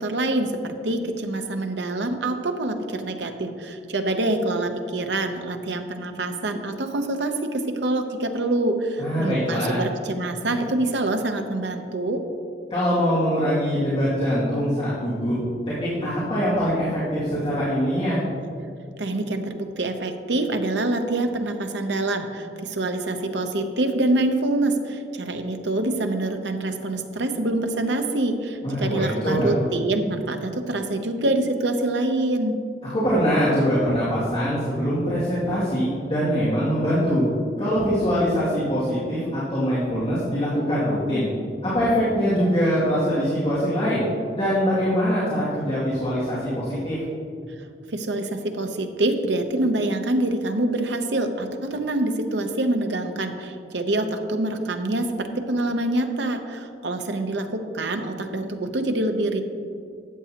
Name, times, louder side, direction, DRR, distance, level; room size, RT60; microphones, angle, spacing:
voice 1, 0.0-12.2 19.0-32.6 47.9-59.4, right 2 dB, 80° right, 6 dB, 0.8 m, -25 dB
voice 2, 9.0-9.8 12.7-15.4 15.8-18.2 28.6-29.6 32.9-37.3 37.6-41.2 41.6-44.0 44.4-47.0, equal, 35° left, -11 dB, 2.3 m, -23 dB
13.0 x 8.3 x 2.9 m, 2.4 s
head